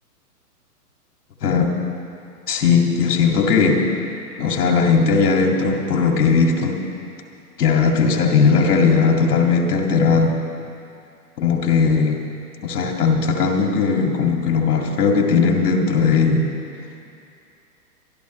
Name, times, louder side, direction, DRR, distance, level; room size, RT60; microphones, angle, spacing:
voice 1, 1.4-1.8 2.5-3.9 4.4-6.9 7.6-10.4 11.4-12.2 12.6-16.5, left 5 dB, 75° left, 2 dB, 2.2 m, -18 dB
26.0 x 12.0 x 3.1 m, 2.5 s
hypercardioid pair, 160°, 46 cm